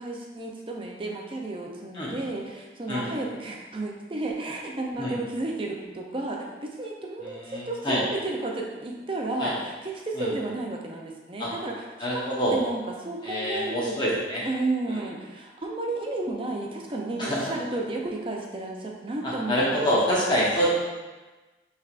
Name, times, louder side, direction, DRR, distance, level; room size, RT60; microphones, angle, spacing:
voice 1, 0.0-13.9 14.4-19.6, right 2 dB, 30° right, 0 dB, 0.5 m, -32 dB
voice 2, 7.2-8.0 9.4-9.5 10.1-10.3 11.4-11.5 12.0-12.6 13.2-14.4 14.9-15.0 17.2-17.5 19.2-20.7, equal, 25° left, -7 dB, 0.9 m, -26 dB
5.7 x 3.4 x 2.5 m, 1.2 s
head